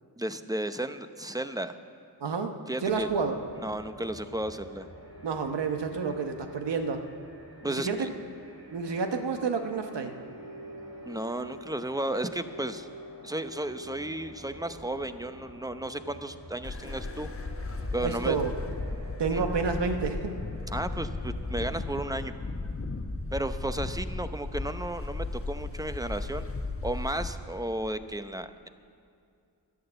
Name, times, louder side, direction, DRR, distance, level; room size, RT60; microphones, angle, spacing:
voice 1, 0.2-1.8 2.7-3.1 3.6-4.9 7.6-8.1 11.1-12.9 13.2-17.3 17.9-18.4 19.3-19.4 20.7-22.4 23.3-26.5 26.8-28.7, right 1 dB, 10° right, 10 dB, 0.7 m, -34 dB
voice 2, 2.2-2.5 2.8-3.4 5.2-7.1 7.8-8.1 8.7-10.2 18.0-18.5 19.2-20.4, right 5 dB, 80° right, 6 dB, 1.1 m, -29 dB
sound 1, 2.8-22.3, equal, 35° right, 3.7 m, -47 dB
sound 2, 16.6-27.3, left 3 dB, 35° left, 1.1 m, -35 dB
11.5 x 10.5 x 7.9 m, 2.4 s
cardioid pair, 45°, 42 cm